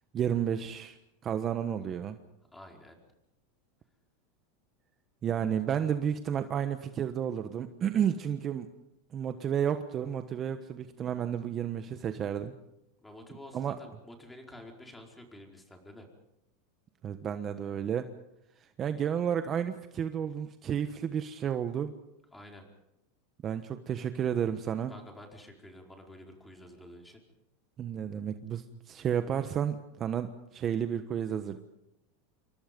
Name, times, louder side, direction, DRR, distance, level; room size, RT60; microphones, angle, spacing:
voice 1, 0.1-1.0 1.2-2.2 5.2-8.7 9.1-12.5 13.5-13.8 17.0-18.0 18.8-21.9 23.4-24.9 27.8-31.6, right 8 dB, 30° right, 9 dB, 1.2 m, -31 dB
voice 2, 2.5-3.0 13.0-16.1 22.3-22.7 24.9-27.2, left 1 dB, 5° left, 2 dB, 4.8 m, -49 dB
28.0 x 24.0 x 5.4 m, 0.85 s
supercardioid pair, 135°, 0 cm